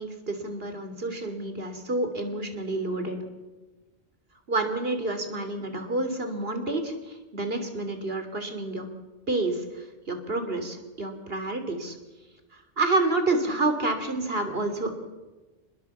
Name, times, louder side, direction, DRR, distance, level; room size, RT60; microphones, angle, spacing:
voice 1, 0.0-3.2 4.5-8.9 9.3-12.0 12.8-15.0, right 2 dB, 60° right, 7 dB, 3.3 m, -29 dB
27.0 x 20.0 x 7.2 m, 1.2 s
omnidirectional pair, 1.1 m